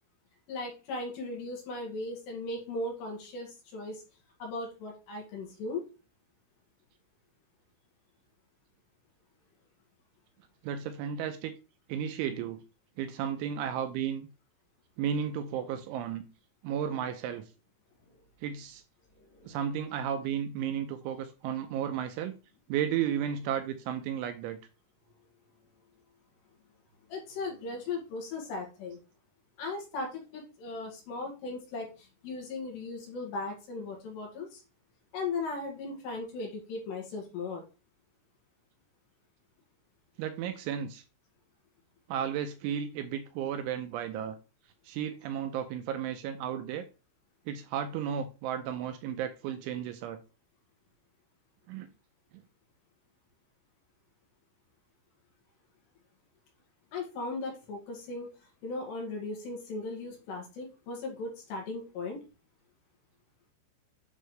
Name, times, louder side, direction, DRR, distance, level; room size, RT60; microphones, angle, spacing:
voice 1, 0.5-4.0 4.4-5.8 19.2-19.6 27.1-29.0 29.6-34.6 35.1-37.6 56.9-58.3 58.6-62.2, left 3 dB, 60° left, 4.0 m, -37 dB
voice 2, 10.6-11.5 11.9-12.6 13.0-14.3 15.0-16.3 16.6-17.5 18.4-18.8 19.4-22.4 22.7-24.6 40.2-41.0 42.1-44.4 44.8-46.9 47.5-50.2 51.7-51.9 52.3-52.4, right 9 dB, 80° right, 2.9 m, -33 dB
9.4 x 6.5 x 3.2 m
omnidirectional pair, 5.9 m